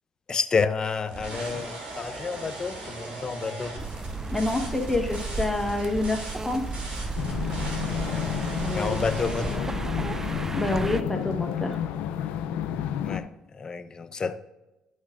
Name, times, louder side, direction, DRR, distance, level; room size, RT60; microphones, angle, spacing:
voice 1, 0.3-3.8 7.9-8.3 8.7-9.5 13.0-14.4, left 5 dB, 35° left, 0.6 m, -30 dB
sound 1, 1.1-9.6, right 2 dB, 60° right, 2.9 m, -38 dB
sound 2, 3.8-11.0, right 3 dB, 20° right, 0.4 m, -34 dB
voice 2, 4.3-6.8 8.6-8.9 10.5-11.8, left 2 dB, 10° left, 1.4 m, -28 dB
sound 3, 7.1-13.2, left 9 dB, 80° left, 0.5 m, -31 dB
11.0 x 6.4 x 2.5 m
supercardioid pair, 70°, 2 cm